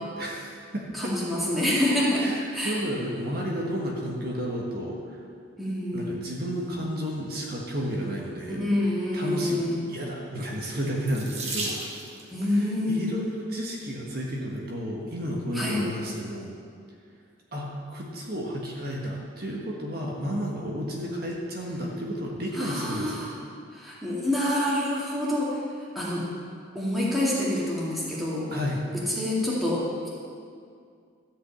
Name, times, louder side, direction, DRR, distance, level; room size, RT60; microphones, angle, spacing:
voice 1, 0.2-1.1 2.2-5.2 5.9-8.6 9.1-11.9 12.5-16.6 17.5-23.3 28.5-28.8, equal, 50° right, -2 dB, 1.5 m, -32 dB
voice 2, 0.9-2.3 2.5-2.8 5.6-6.1 8.5-9.8 12.3-13.2 15.5-15.8 22.6-23.3 23.7-25.6 25.9-26.2 26.7-28.5 29.1-30.1, left 1 dB, ahead, -7 dB, 2.2 m, -27 dB
Water tap faucet / Sink (filling or washing), 11.0-12.3 13.3-13.7 14.4-14.5 14.9-15.0, right 2 dB, 35° right, 1.6 m, -34 dB
13.5 x 5.6 x 8.5 m, 2.3 s
head